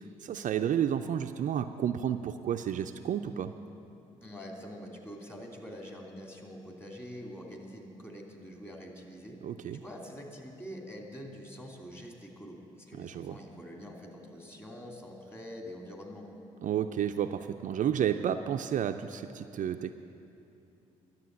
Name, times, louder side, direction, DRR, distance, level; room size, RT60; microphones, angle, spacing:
voice 1, 0.2-3.5 9.4-9.8 13.0-13.4 16.6-19.9, right 9 dB, 55° right, 8 dB, 0.4 m, -31 dB
voice 2, 4.2-9.4 9.7-16.3, equal, 15° left, 0 dB, 2.8 m, -45 dB
11.0 x 7.4 x 8.8 m, 2.7 s
hypercardioid pair, 45°, 16 cm